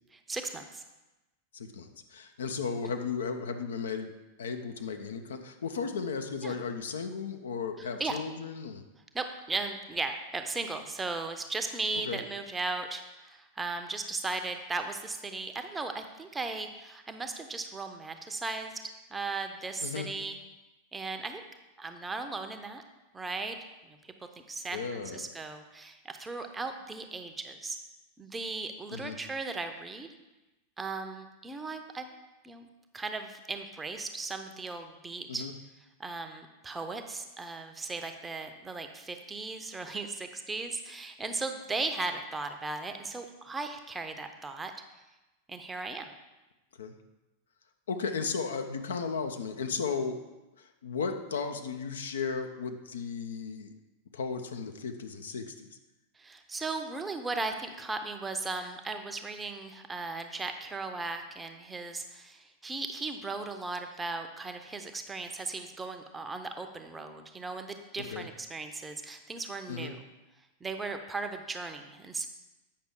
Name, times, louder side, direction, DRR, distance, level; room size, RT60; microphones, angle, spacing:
voice 1, 0.1-0.8 6.4-6.6 7.8-8.2 9.1-18.7 19.1-20.4 20.9-21.4 21.8-22.8 23.1-27.8 28.2-30.1 30.8-32.1 32.4-32.7 32.9-35.5 36.0-44.7 45.5-46.1 56.2-70.0 70.6-72.3, right 3 dB, 15° right, 6 dB, 0.7 m, -37 dB
voice 2, 1.5-4.1 4.4-8.8 12.1-12.2 19.8-20.1 24.7-25.3 28.9-29.2 35.3-35.5 46.8-46.9 47.9-50.2 50.8-53.7 54.1-55.7 68.0-68.3 69.7-69.9, left 5 dB, 65° left, 6 dB, 0.7 m, -35 dB
8.6 x 5.8 x 3.7 m, 1.0 s
figure-of-eight pair, 90°, 0 cm